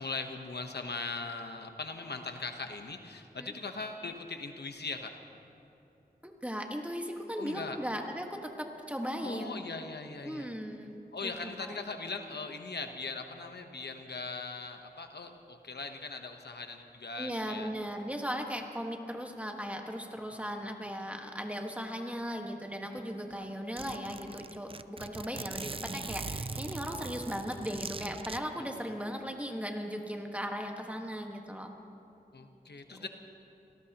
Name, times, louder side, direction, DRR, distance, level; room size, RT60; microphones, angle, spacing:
voice 1, 0.0-5.2 7.4-7.8 9.2-10.5 11.1-17.7 20.3-20.6 23.3-23.5 28.5-28.7 32.3-33.1, left 3 dB, 80° left, 5 dB, 1.1 m, -40 dB
voice 2, 6.2-9.6 10.2-11.0 11.2-11.3 11.6-11.7 17.2-31.7 32.9-33.1, equal, 10° right, 3 dB, 1.5 m, -37 dB
Zipper (clothing), 23.0-23.1 23.3-23.4 23.8-28.4, right 4 dB, 35° right, 0.4 m, -41 dB
26.5 x 18.0 x 3.0 m, 2.8 s
wide cardioid pair, 60°, 17 cm